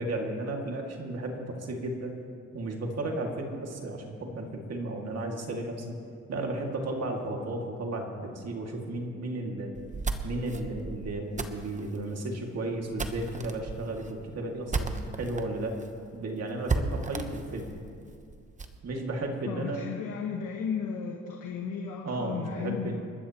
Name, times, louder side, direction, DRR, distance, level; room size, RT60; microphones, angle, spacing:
voice 1, 0.0-2.2 2.5-6.0 6.3-9.7 10.2-15.8 16.1-17.7 18.8-19.9 22.0-23.0, right 2 dB, 55° right, 1 dB, 2.4 m, -34 dB
sound 1, 9.7-15.4 15.8-15.9 16.2-16.3 16.7-18.8, right 3 dB, 25° right, 1.0 m, -35 dB
voice 2, 19.4-23.0, left 6 dB, 80° left, 0 dB, 1.5 m, -34 dB
29.5 x 12.5 x 3.1 m, 2.4 s
cardioid pair, 90°, 30 cm